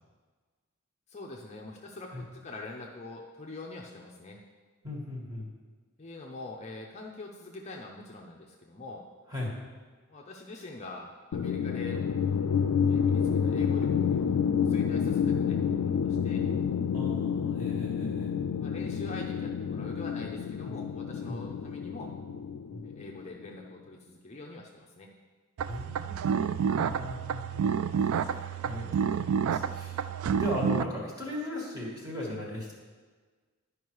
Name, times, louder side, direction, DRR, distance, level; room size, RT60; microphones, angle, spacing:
voice 1, 1.1-4.4 6.0-9.0 10.1-12.0 12.9-16.4 18.6-22.1 22.8-25.1, left 2 dB, 30° left, -1 dB, 0.6 m, -44 dB
voice 2, 4.8-5.5 9.3-9.5 16.9-18.4 20.6-20.7 21.3-21.4 22.7-22.8 25.7-27.7 28.1-30.0 30.3-32.7, left 1 dB, 15° right, -3 dB, 1.7 m, -38 dB
sound 1, 11.3-23.5, left 7 dB, 90° left, 0.4 m, -29 dB
sound 2, 25.6-30.8, right 7 dB, 70° right, 0.3 m, -29 dB
11.0 x 5.2 x 4.7 m, 1.5 s
head